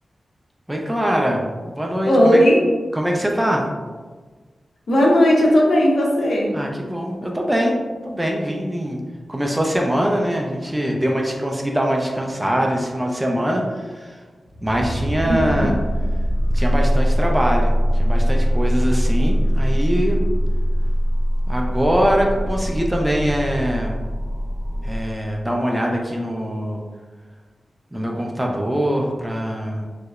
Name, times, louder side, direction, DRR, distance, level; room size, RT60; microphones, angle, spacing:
voice 1, 0.7-2.4 3.0-3.7 6.5-7.8 8.0-9.0 9.3-14.2 14.6-15.7 16.5-20.2 21.5-24.0 24.8-26.8 27.9-29.9, equal, 10° right, 0 dB, 0.4 m, -23 dB
voice 2, 2.0-2.6 4.9-6.5 15.3-15.8, equal, 70° left, -2 dB, 0.7 m, -16 dB
sound 1, 14.5-25.0, equal, 15° left, 1.2 m, -21 dB
3.1 x 2.8 x 2.3 m, 1.4 s
wide cardioid pair, 105°, 0 cm